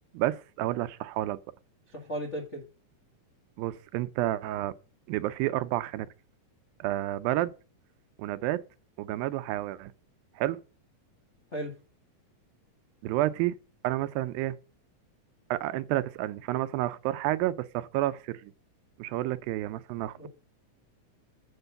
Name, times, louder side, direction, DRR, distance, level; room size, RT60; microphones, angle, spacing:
voice 1, 0.1-1.4 3.6-4.7 5.1-6.1 6.8-7.5 8.2-8.6 9.0-9.9 10.4-10.6 13.0-13.5 13.8-14.6 15.5-18.5 19.0-20.3, right 15 dB, 90° right, 2.4 m, -30 dB
voice 2, 1.9-2.6 11.5-11.7 20.2-20.3, right 1 dB, 45° left, 0.9 m, -35 dB
8.8 x 4.6 x 6.7 m
omnidirectional pair, 4.0 m